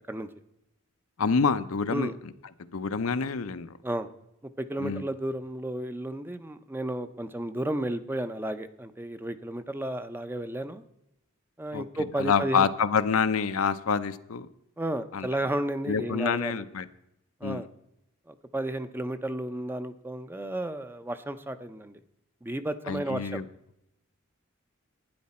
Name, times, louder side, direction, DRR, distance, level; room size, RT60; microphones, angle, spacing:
voice 1, 1.2-2.1 2.7-3.7 4.8-5.0 11.7-11.8 12.2-14.5 15.1-15.3 15.9-16.9 17.4-17.7 22.9-23.4, left 5 dB, 80° left, 11 dB, 0.6 m, -27 dB
voice 2, 4.6-10.8 11.6-12.7 14.8-16.6 17.4-17.7 18.3-22.0 22.4-23.4, right 1 dB, 10° right, 10 dB, 0.5 m, -33 dB
12.0 x 9.6 x 4.3 m, 0.83 s
head